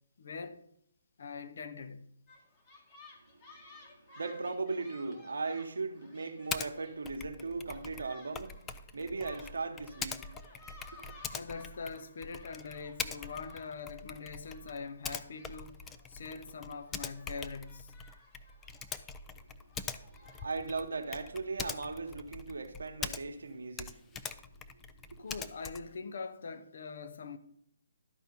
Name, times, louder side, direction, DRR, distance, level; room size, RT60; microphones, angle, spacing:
voice 1, 0.2-0.6 1.2-2.1 11.3-17.9 25.2-27.4, left 5 dB, 60° left, 0.7 m, -43 dB
sound 1, 2.3-20.4, left 2 dB, 30° left, 1.6 m, -58 dB
voice 2, 3.7-8.6 8.9-10.3 10.9-11.2 19.6-24.1 25.1-25.3, right 3 dB, 75° right, 0.9 m, -38 dB
Typing, 6.5-6.7 7.0-23.5 23.7-26.0, left 6 dB, 15° left, 0.4 m, -43 dB
12.0 x 4.5 x 5.4 m
figure-of-eight pair, 145°, 0 cm